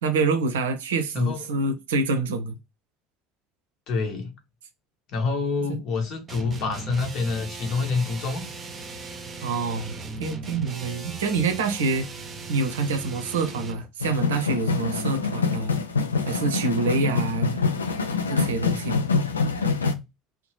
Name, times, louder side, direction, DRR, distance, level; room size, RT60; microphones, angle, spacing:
voice 1, 0.0-2.5 5.7-5.8 9.4-12.1 12.5-15.8 16.3-17.6 18.3-19.0, right 3 dB, 70° right, 0.5 m, -26 dB
voice 2, 1.1-1.6 3.9-4.3 5.1-8.4, left 4 dB, 50° left, 0.9 m, -27 dB
sound 1, 6.3-13.9, right 3 dB, 25° right, 0.6 m, -38 dB
sound 2, 14.0-19.9, left 4 dB, 80° left, 0.3 m, -25 dB
2.7 x 2.0 x 3.1 m
figure-of-eight pair, 65°, 0 cm